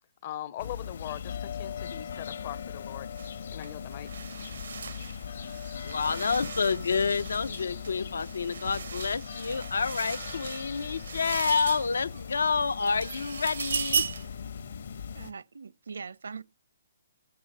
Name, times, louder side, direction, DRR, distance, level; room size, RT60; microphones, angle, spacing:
voice 1, 0.2-3.1 3.5-4.1, left 12 dB, 25° left, 0.5 m, -40 dB
sound 1, 0.6-15.3, left 7 dB, 50° left, 0.9 m, -39 dB
sound 2, 3.2-3.3 3.6-12.3 12.7-14.4, right 6 dB, 60° right, 0.5 m, -37 dB
voice 2, 5.8-14.1, left 5 dB, 85° left, 0.7 m, -29 dB
voice 3, 15.1-16.4, right 5 dB, 85° right, 0.8 m, -41 dB
13.5 x 7.8 x 5.3 m
hypercardioid pair, 180°, 0 cm